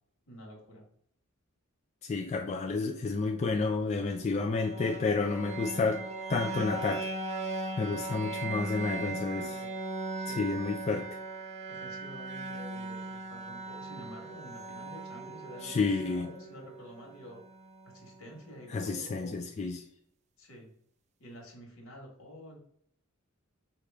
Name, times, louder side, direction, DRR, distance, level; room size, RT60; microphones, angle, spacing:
voice 1, 0.3-0.9 8.9-9.7 10.2-10.4 11.7-17.4 17.8-19.5 20.4-20.7 21.2-22.6, equal, 70° left, 1.7 m, -49 dB
voice 2, 2.0-6.0 6.3-7.1 7.8-9.5 10.4-11.1 15.6-16.3 18.7-19.8, left 4 dB, 30° left, 0.3 m, -30 dB
sound 1, 4.4-18.3, right 2 dB, 35° right, 0.4 m, -39 dB
4.8 x 2.9 x 3.5 m
head